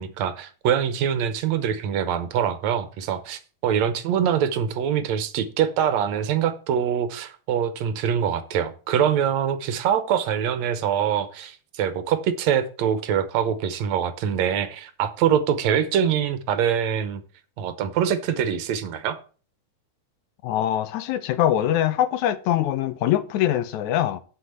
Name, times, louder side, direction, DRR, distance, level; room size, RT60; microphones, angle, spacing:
voice 1, 0.0-17.2 17.6-19.2, right 8 dB, 75° right, 2.0 m, -24 dB
voice 2, 20.4-24.2, left 12 dB, 80° left, 2.1 m, -23 dB
8.2 x 5.9 x 7.9 m
omnidirectional pair, 3.4 m